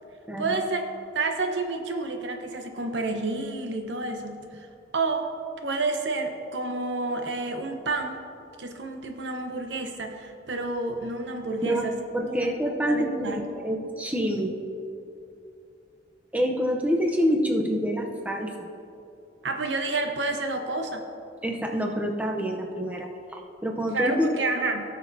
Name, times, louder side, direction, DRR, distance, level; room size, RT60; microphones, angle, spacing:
voice 1, 0.4-0.9 1.1-4.4 4.9-5.3 5.6-8.2 8.6-12.0 12.3-12.5 12.9-13.5 19.4-21.1 23.9-24.8, right 3 dB, 80° right, 4 dB, 0.9 m, -29 dB
voice 2, 12.1-14.5 16.3-18.5 21.4-24.3, equal, 10° right, 1 dB, 0.6 m, -27 dB
17.0 x 6.2 x 2.7 m, 2.7 s
head